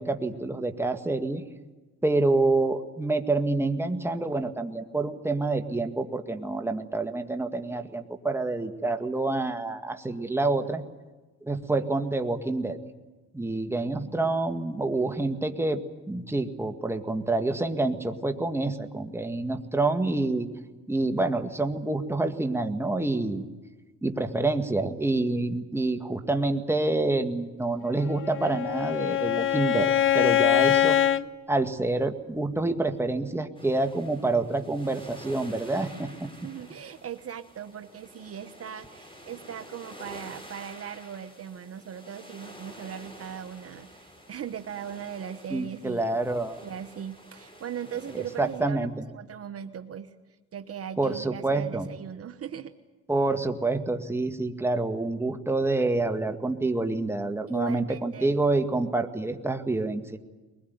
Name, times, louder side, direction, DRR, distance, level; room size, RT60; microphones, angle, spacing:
voice 1, 0.0-1.4 2.0-10.8 11.4-12.8 13.3-15.8 16.1-20.5 20.9-23.5 24.0-31.0 31.5-36.3 45.5-46.6 48.1-48.9 51.0-51.9 53.1-60.2, right 2 dB, 10° right, 6 dB, 1.9 m, -27 dB
voice 2, 13.8-14.2 36.4-46.1 46.6-50.1 50.5-52.7 57.5-58.4, right 8 dB, 50° right, 9 dB, 1.2 m, -39 dB
Bowed string instrument, 28.1-31.3, left 11 dB, 45° left, 0.8 m, -23 dB
sound 1, 33.5-48.6, equal, 15° left, 6.6 m, -49 dB
22.0 x 20.5 x 9.5 m, 1.2 s
cardioid pair, 90°, 30 cm